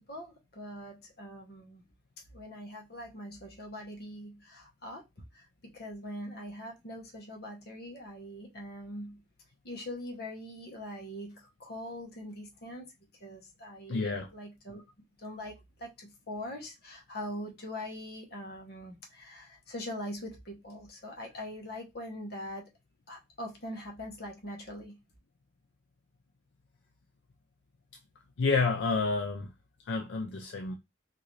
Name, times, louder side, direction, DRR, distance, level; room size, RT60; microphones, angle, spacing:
voice 1, 0.1-1.8 2.3-5.0 5.3-9.2 9.6-12.9 13.2-14.8 15.2-22.6 23.1-25.0, left 1 dB, 55° left, 1.0 m, -42 dB
voice 2, 13.9-14.3 28.4-29.5 29.8-30.7, left 4 dB, 70° left, 0.4 m, -29 dB
3.8 x 2.6 x 3.1 m
head